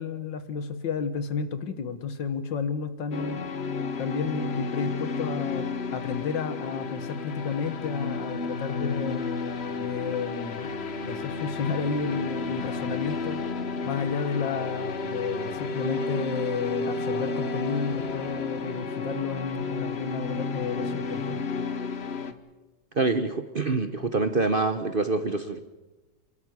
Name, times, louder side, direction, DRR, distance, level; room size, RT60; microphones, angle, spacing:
voice 1, 0.0-3.4 4.0-5.7 5.9-9.3 9.8-10.7 11.0-13.4 13.8-21.4, left 5 dB, 80° left, 11 dB, 2.0 m, -31 dB
sound 1, 3.1-22.3, left 4 dB, 40° left, 1.1 m, -32 dB
voice 2, 22.9-25.6, right 3 dB, 40° right, 9 dB, 0.8 m, -26 dB
27.5 x 12.0 x 9.6 m, 1.1 s
omnidirectional pair, 2.0 m